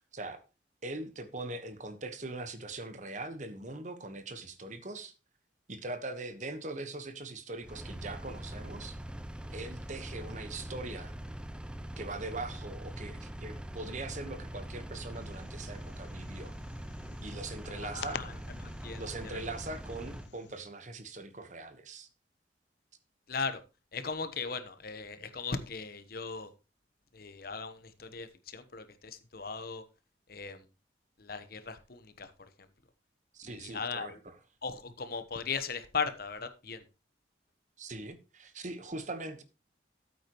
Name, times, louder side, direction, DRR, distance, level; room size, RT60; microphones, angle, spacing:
voice 1, 0.8-5.1 5.7-9.0 9.5-11.1 12.0-16.5 17.2-18.2 19.0-22.1 33.3-34.3 37.8-39.4, right 2 dB, 40° right, 1.2 m, -41 dB
Engine, 7.6-20.3, right 1 dB, 5° right, 0.6 m, -43 dB
sound 1, 15.1-20.6, left 7 dB, 80° left, 0.6 m, -49 dB
voice 2, 17.6-19.4 23.3-23.6 23.9-26.5 27.1-29.8 30.3-30.6 31.2-32.5 33.4-34.2 34.6-36.8, left 5 dB, 55° left, 1.1 m, -38 dB
13.5 x 8.4 x 3.1 m
head